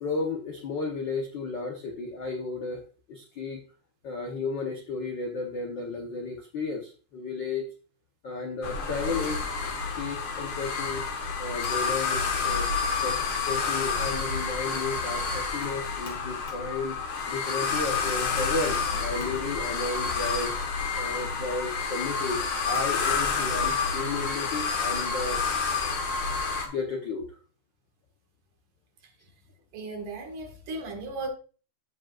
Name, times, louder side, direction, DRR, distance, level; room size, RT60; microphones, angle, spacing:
voice 1, 0.0-2.8 3.1-3.6 4.0-7.6 8.2-9.4 9.9-12.7 13.0-17.0 17.3-20.5 21.0-25.7 26.6-27.4, left 3 dB, 80° left, 2 dB, 1.0 m, -33 dB
sound 1, 8.6-26.7, left 5 dB, 55° left, 1.6 m, -29 dB
voice 2, 29.7-31.3, right 3 dB, 80° right, 4 dB, 3.2 m, -36 dB
15.0 x 5.0 x 2.4 m, 0.38 s
omnidirectional pair, 3.6 m